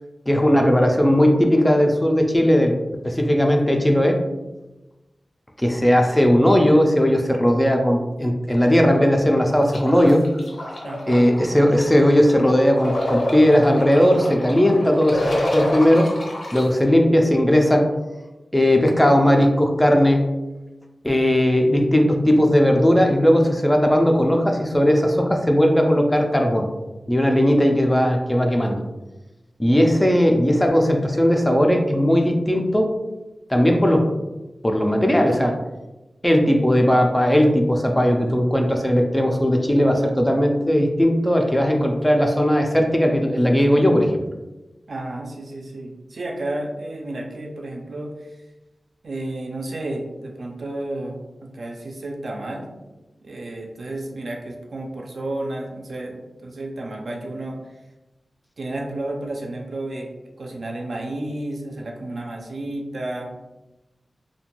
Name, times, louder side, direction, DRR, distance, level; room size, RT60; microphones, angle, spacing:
voice 1, 0.3-2.7 3.0-4.2 5.6-10.3 11.1-16.1 16.5-17.9 18.5-20.3 21.0-26.7 27.1-28.8 29.6-32.9 33.5-34.1 34.6-35.6 36.2-44.1, equal, 10° left, 2 dB, 0.3 m, -17 dB
sound 1, 9.7-16.6, left 1 dB, 80° left, 0.6 m, -28 dB
voice 2, 10.8-11.3 44.9-48.4 49.0-52.7 53.2-57.6 58.6-60.1 60.4-63.3, right 1 dB, 70° right, 1 dB, 0.4 m, -32 dB
2.5 x 2.2 x 2.9 m, 1.1 s
wide cardioid pair, 110°, 0 cm